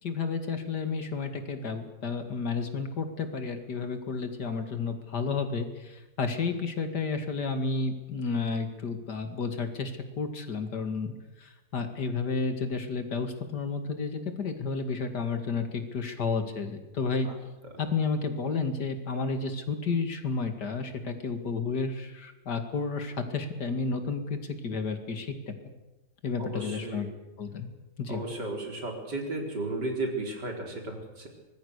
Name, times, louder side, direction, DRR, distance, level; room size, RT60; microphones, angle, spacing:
voice 1, 0.0-11.1 11.4-17.3 17.8-25.3 26.2-27.1 27.4-27.7 28.0-28.2, left 4 dB, 75° left, 7 dB, 2.8 m, -31 dB
voice 2, 26.4-27.1 28.1-31.3, right 2 dB, 85° right, 1 dB, 4.8 m, -34 dB
25.0 x 20.0 x 6.7 m, 1.1 s
omnidirectional pair, 1.8 m